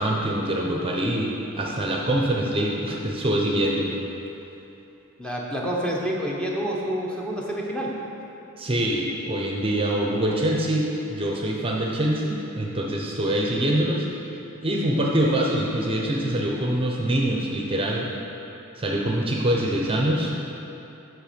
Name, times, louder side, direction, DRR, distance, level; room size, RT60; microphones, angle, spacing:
voice 1, 0.0-3.9 8.6-14.1 14.6-18.1 18.8-20.3, right 1 dB, 25° right, -2 dB, 0.7 m, -24 dB
voice 2, 5.2-7.9, equal, 5° left, -4 dB, 0.9 m, -28 dB
7.9 x 6.2 x 5.1 m, 2.9 s
head